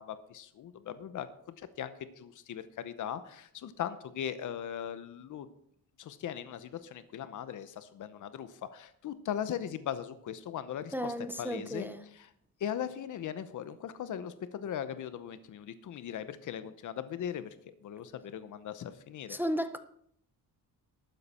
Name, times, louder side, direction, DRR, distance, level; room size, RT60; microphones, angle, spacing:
voice 1, 0.0-5.5 6.0-11.1 11.4-11.9 12.1-12.3 12.6-19.4, left 9 dB, 55° left, 0.8 m, -39 dB
voice 2, 10.9-12.0 19.3-19.8, equal, 5° right, 0.5 m, -34 dB
12.0 x 9.4 x 4.3 m
cardioid pair, 165°, 37 cm